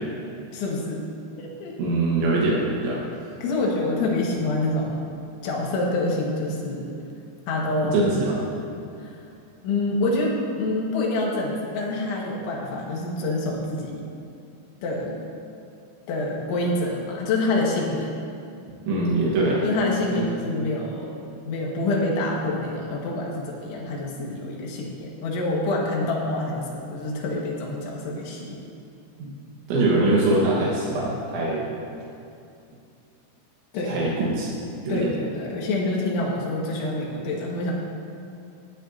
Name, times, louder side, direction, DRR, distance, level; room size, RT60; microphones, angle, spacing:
voice 1, 0.5-1.0 1.4-1.8 3.4-5.0 5.4-7.0 7.5-8.1 9.0-9.2 9.6-14.1 14.8-15.2 16.1-18.1 19.6-28.7 33.7-33.9 34.9-37.7, left 2 dB, 80° left, -2 dB, 4.0 m, -26 dB
voice 2, 1.8-3.0 7.8-8.4 18.9-19.6 20.1-20.3 29.2-29.3 29.7-31.7 33.9-34.5 34.9-35.1, right 2 dB, 75° right, -5 dB, 3.8 m, -23 dB
19.5 x 12.5 x 2.8 m, 2.6 s
omnidirectional pair, 5.4 m